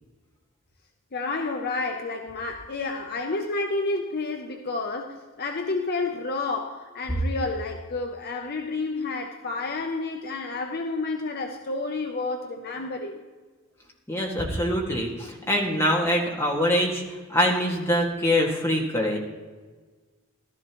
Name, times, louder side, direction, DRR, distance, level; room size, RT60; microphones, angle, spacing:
voice 1, 1.1-13.2, left 3 dB, 45° left, 3 dB, 0.7 m, -30 dB
voice 2, 14.1-17.0 17.3-19.2, equal, 10° left, -2 dB, 2.0 m, -24 dB
15.0 x 12.5 x 3.1 m, 1.4 s
head